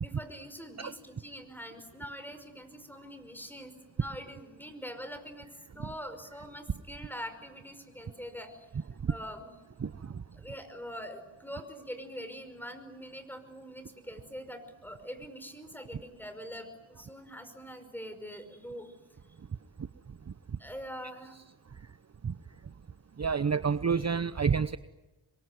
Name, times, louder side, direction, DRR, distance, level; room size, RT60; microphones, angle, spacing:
voice 1, 0.0-5.5 5.7-8.7 9.1-9.6 10.3-18.9 20.6-21.4, equal, 5° left, 9 dB, 5.4 m, -44 dB
voice 2, 9.8-10.2 22.2-22.3 23.2-24.8, right 6 dB, 35° right, 14 dB, 0.8 m, -29 dB
27.0 x 23.0 x 9.4 m, 1.1 s
cardioid pair, 65°, 47 cm